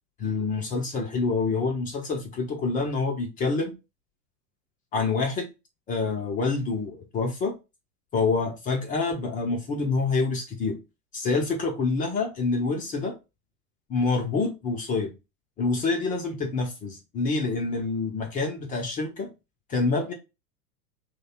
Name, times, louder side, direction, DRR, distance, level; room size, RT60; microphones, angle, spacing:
voice 1, 0.2-3.7 4.9-5.5 5.9-7.5 8.1-10.8 11.1-13.1 13.9-15.1 15.6-19.3 19.7-20.1, left 4 dB, 20° left, 0.5 m, -27 dB
3.1 x 2.2 x 4.1 m
hypercardioid pair, 100°, 47 cm